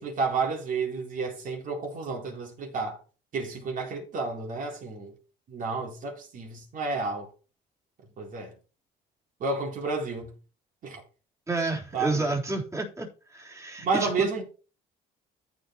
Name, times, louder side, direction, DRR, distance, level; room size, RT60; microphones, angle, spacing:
voice 1, 0.0-3.0 3.3-5.1 5.5-7.3 8.2-8.5 9.4-10.3 10.8-11.0 11.9-12.4 13.8-14.4, right 4 dB, 50° right, 4.0 m, -31 dB
voice 2, 11.5-13.1 13.3-14.3, right 2 dB, 15° right, 3.7 m, -30 dB
14.0 x 5.1 x 4.5 m
cardioid pair, 110°, 17 cm